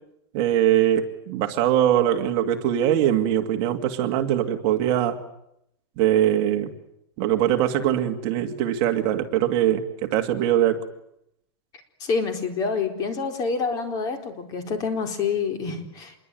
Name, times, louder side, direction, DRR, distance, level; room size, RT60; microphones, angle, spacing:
voice 1, 0.3-5.2 6.0-6.7 7.2-10.9, right 11 dB, 40° right, 5 dB, 2.2 m, -22 dB
voice 2, 12.0-16.2, left 5 dB, 25° left, 5 dB, 4.2 m, -27 dB
27.5 x 22.0 x 9.2 m, 0.79 s
supercardioid pair, 160°, 14 cm